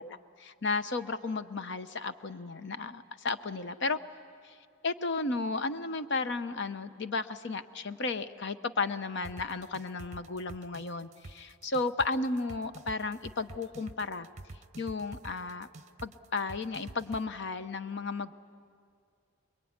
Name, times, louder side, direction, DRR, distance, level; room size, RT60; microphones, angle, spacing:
voice 1, 0.0-4.0 4.8-14.3 14.8-15.7 16.0-18.3, left 3 dB, 55° left, 11 dB, 0.9 m, -34 dB
sound 1, 9.2-17.2, right 2 dB, 35° right, 0.8 m, -46 dB
26.5 x 22.0 x 9.6 m, 2.2 s
head